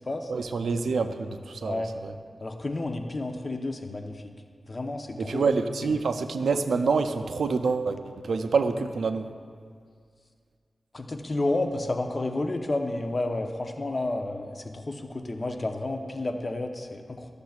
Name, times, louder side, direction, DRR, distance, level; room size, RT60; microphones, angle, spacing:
voice 1, 0.3-2.1 5.2-9.3, right 4 dB, 90° right, 8 dB, 0.4 m, -27 dB
voice 2, 1.6-1.9 2.4-4.2 4.7-5.4 5.8-5.9 10.9-17.3, left 2 dB, 40° left, 4 dB, 0.7 m, -31 dB
13.0 x 6.6 x 2.4 m, 2.1 s
cardioid pair, 60°, 0 cm